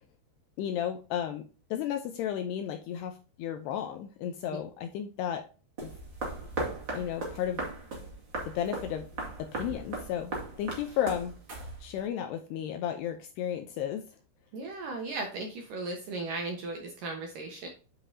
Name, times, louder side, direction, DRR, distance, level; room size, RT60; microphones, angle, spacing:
voice 1, 0.6-1.4 1.7-5.5 5.8-5.9 6.9-7.6 8.6-9.1 9.4-10.3 10.6-11.4 11.8-14.0, left 10 dB, 80° left, 6 dB, 2.5 m, -33 dB
sound 1, 5.8-12.1, right 2 dB, 35° right, 2.2 m, -38 dB
voice 2, 14.5-17.7, right 3 dB, 65° right, 2 dB, 2.2 m, -36 dB
10.0 x 5.3 x 2.8 m, 0.34 s
omnidirectional pair, 5.4 m